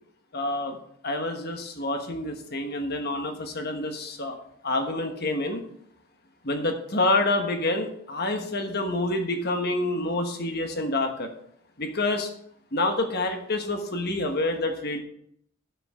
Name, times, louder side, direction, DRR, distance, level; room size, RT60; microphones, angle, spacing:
voice 1, 0.3-0.8 1.0-4.4 4.6-5.6 6.4-11.3 11.8-12.3 12.7-15.0, left 2 dB, 45° left, 5 dB, 1.3 m, -27 dB
12.5 x 7.0 x 3.7 m, 0.68 s
head